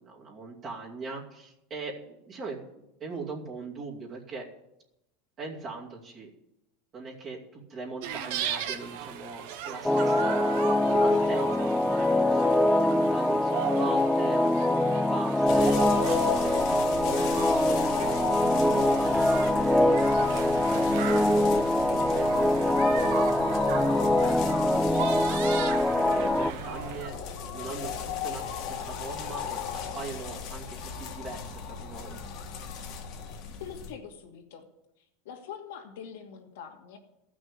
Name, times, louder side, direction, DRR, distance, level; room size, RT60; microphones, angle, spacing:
voice 1, 0.0-2.6 3.0-4.5 5.4-6.3 6.9-10.6 11.0-19.1 19.8-20.0 20.7-22.3 23.0-25.5 25.9-27.2 27.5-32.2, right 3 dB, 35° right, -2 dB, 2.6 m, -41 dB
sound 1, 8.0-27.1, right 9 dB, 65° right, 1.1 m, -37 dB
sound 2, 9.8-26.5, left 1 dB, 5° left, 0.4 m, -24 dB
sound 3, 15.5-33.9, left 6 dB, 50° left, 1.9 m, -37 dB
voice 2, 33.3-34.7 35.0-37.0, left 8 dB, 80° left, 2 dB, 2.3 m, -44 dB
14.0 x 6.2 x 8.3 m, 0.87 s
supercardioid pair, 130°, 0 cm